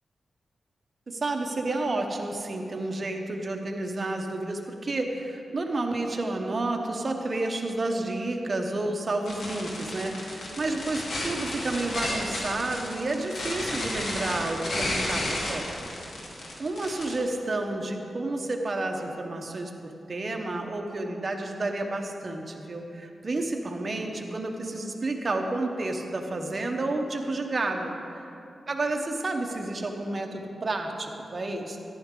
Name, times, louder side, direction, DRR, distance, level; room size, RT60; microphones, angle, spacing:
voice 1, 1.1-15.9 16.6-28.2 28.7-31.8, right 2 dB, 35° right, 3 dB, 1.0 m, -30 dB
sound 1, 9.3-17.2, left 1 dB, 85° left, 2.4 m, -32 dB
13.5 x 11.0 x 3.8 m, 2.8 s
wide cardioid pair, 140°, 0 cm